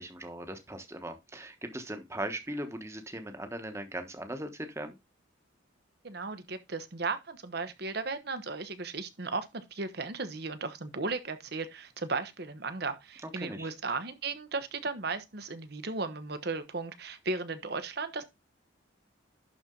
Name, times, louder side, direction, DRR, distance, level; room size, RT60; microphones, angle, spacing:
voice 1, 0.0-5.0 13.2-13.7, right 1 dB, 15° right, 1.2 m, -39 dB
voice 2, 6.0-18.2, right 3 dB, 55° right, 1.1 m, -35 dB
11.5 x 4.4 x 3.8 m
head